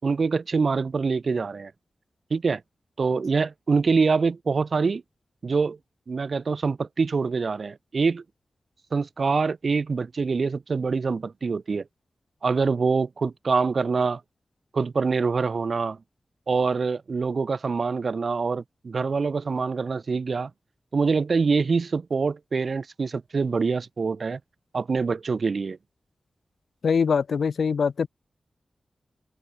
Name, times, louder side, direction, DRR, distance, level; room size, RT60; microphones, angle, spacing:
voice 1, 0.0-1.7 2.3-2.6 3.0-5.0 5.4-5.8 6.1-8.2 8.9-11.8 12.4-14.2 14.7-16.0 16.5-20.5 20.9-24.4 24.7-25.8, right 4 dB, 55° right, 5.3 m, -25 dB
voice 2, 26.8-28.1, left 6 dB, 80° left, 3.5 m, -23 dB
wide cardioid pair, 135°, 0 cm